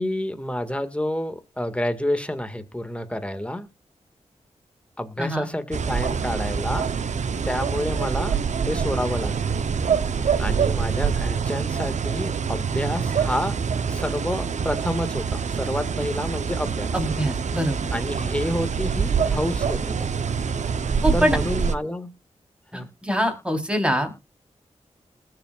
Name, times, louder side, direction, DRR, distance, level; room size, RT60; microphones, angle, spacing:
voice 1, 0.0-3.7 5.0-6.9 7.4-8.4 8.6-9.6 10.4-13.6 13.9-16.9 17.9-20.1 21.1-22.1 22.7-22.9, left 1 dB, 10° left, 1.9 m, -29 dB
sound 1, 5.7-21.7, right 6 dB, 80° right, 0.8 m, -25 dB
voice 2, 16.9-17.9 21.0-21.4 22.7-24.1, equal, 10° right, 3.8 m, -24 dB
20.5 x 7.7 x 2.4 m
cardioid pair, 70°, 12 cm